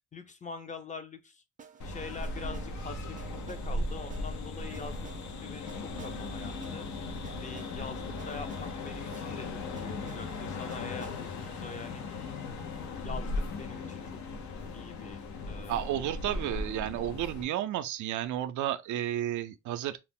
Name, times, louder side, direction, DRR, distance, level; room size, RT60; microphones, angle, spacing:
voice 1, 0.1-1.4 1.8-5.1 5.4-6.9 7.4-12.0 12.9-14.0 14.7-15.2 15.4-16.0 16.2-16.7 17.0-17.1, left 4 dB, 25° left, 0.5 m, -44 dB
sound 1, 1.6-13.5, right 6 dB, 25° right, 0.5 m, -54 dB
sound 2, 1.8-17.4, left 2 dB, 70° left, 0.7 m, -37 dB
voice 2, 15.7-20.0, right 12 dB, 80° right, 0.5 m, -32 dB
2.4 x 2.0 x 3.5 m
cardioid pair, 90°, 30 cm